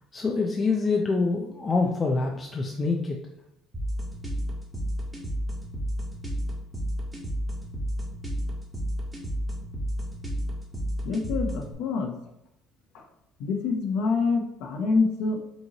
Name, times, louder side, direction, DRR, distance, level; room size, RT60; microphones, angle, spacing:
voice 1, 0.1-3.2, left 3 dB, 25° left, 1 dB, 0.5 m, -25 dB
sound 1, 3.7-11.7, equal, 10° right, 1.2 m, -31 dB
voice 2, 11.0-12.1 12.9-13.1 13.4-15.4, left 4 dB, 80° left, 3 dB, 0.7 m, -26 dB
5.3 x 2.9 x 2.8 m, 0.80 s
cardioid pair, 120°, 0 cm